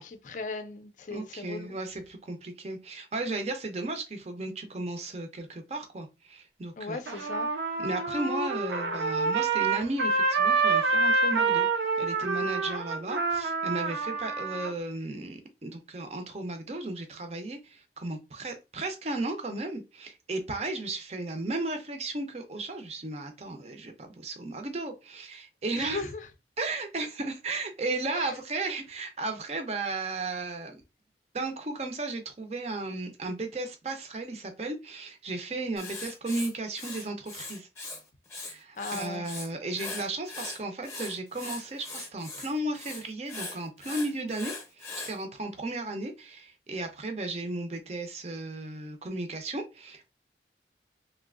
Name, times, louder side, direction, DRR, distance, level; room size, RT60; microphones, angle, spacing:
voice 1, 0.0-1.7 6.8-7.5 25.8-26.3 28.1-28.4 38.8-39.2, left 3 dB, 45° left, 0.4 m, -37 dB
voice 2, 1.1-7.3 7.8-26.0 26.6-30.8 31.3-37.7 38.4-50.1, right 2 dB, 35° right, 0.6 m, -35 dB
Trumpet, 7.1-14.7, right 4 dB, 80° right, 0.6 m, -27 dB
Writing, 35.8-38.0 38.3-39.5 39.8-45.2, left 3 dB, 15° left, 0.7 m, -40 dB
3.2 x 2.6 x 2.4 m
head